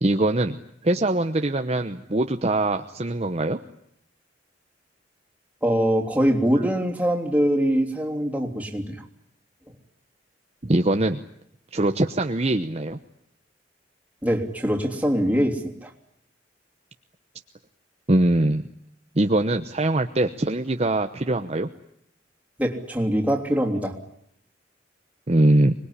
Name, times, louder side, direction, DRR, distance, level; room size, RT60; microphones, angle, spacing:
voice 1, 0.0-3.6 10.6-11.2 11.7-13.0 18.1-18.6 19.2-21.7 25.3-25.7, right 1 dB, 35° right, 6 dB, 1.0 m, -22 dB
voice 2, 5.6-9.0 14.2-15.9 22.6-24.0, equal, 10° right, 0 dB, 3.2 m, -23 dB
25.5 x 21.0 x 10.0 m, 0.73 s
head